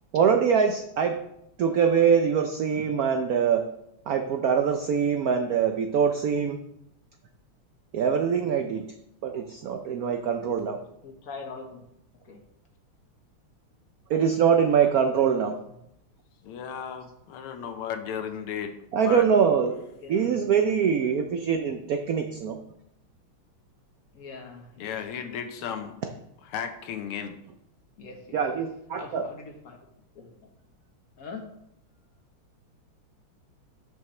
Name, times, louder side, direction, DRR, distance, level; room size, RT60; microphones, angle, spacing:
voice 1, 0.1-1.2 1.6-3.6 4.1-6.6 7.9-8.8 9.2-10.8 14.1-15.5 18.9-19.8 20.1-22.6 28.3-29.2, right 7 dB, 85° right, 6 dB, 0.8 m, -23 dB
voice 2, 10.7-11.8 12.2-12.4 19.9-20.3 24.1-24.9 28.0-28.6 28.9-29.8 30.1-30.5 31.2-31.5, left 4 dB, 50° left, 3 dB, 1.4 m, -43 dB
voice 3, 16.4-18.8 19.0-19.3 24.8-26.0 26.4-27.4, left 8 dB, 85° left, 7 dB, 1.8 m, -34 dB
13.0 x 5.7 x 3.2 m, 0.79 s
omnidirectional pair, 2.3 m